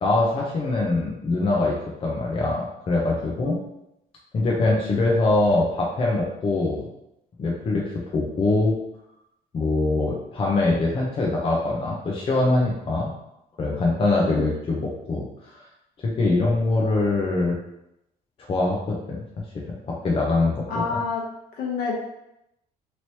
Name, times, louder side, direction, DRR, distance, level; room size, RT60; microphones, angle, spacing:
voice 1, 0.0-3.6 4.3-6.8 7.4-8.7 9.5-13.1 13.6-15.6 16.0-17.6 18.5-19.2 19.5-21.0, left 2 dB, 35° left, -2 dB, 0.6 m, -23 dB
voice 2, 20.7-21.2 21.6-22.0, left 4 dB, 65° left, -2 dB, 1.0 m, -28 dB
3.0 x 2.9 x 2.8 m, 0.85 s
cardioid pair, 110°, 17 cm